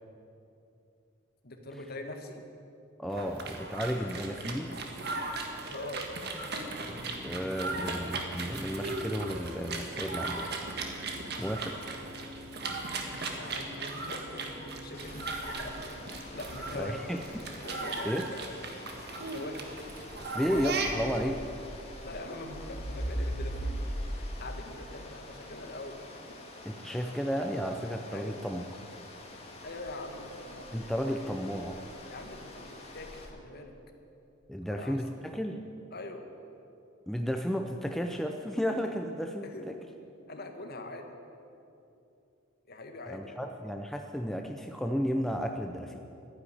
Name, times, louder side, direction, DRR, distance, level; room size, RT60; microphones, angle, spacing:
voice 1, 1.4-2.4 5.7-6.0 7.7-7.8 12.0-12.2 13.4-16.0 16.3-17.0 17.6-18.5 18.8-19.9 20.2-20.5 22.0-26.0 26.3-26.4 28.1-28.4 29.6-30.7 31.1-31.6 32.1-33.8 34.6-35.0 35.9-36.3 39.4-39.7 40.3-41.2 42.6-43.5, left 2 dB, 45° left, 5 dB, 1.5 m, -43 dB
voice 2, 3.0-4.8 7.2-10.5 11.4-11.8 16.7-17.2 17.7-18.3 20.3-21.4 26.7-28.6 30.7-31.8 34.5-35.6 37.1-39.8 43.1-46.0, equal, ahead, 4 dB, 0.5 m, -33 dB
sound 1, 3.1-21.3, right 3 dB, 50° right, 1.6 m, -37 dB
sound 2, 14.9-33.3, equal, 30° left, 1.9 m, -42 dB
12.0 x 10.5 x 9.7 m, 2.8 s
head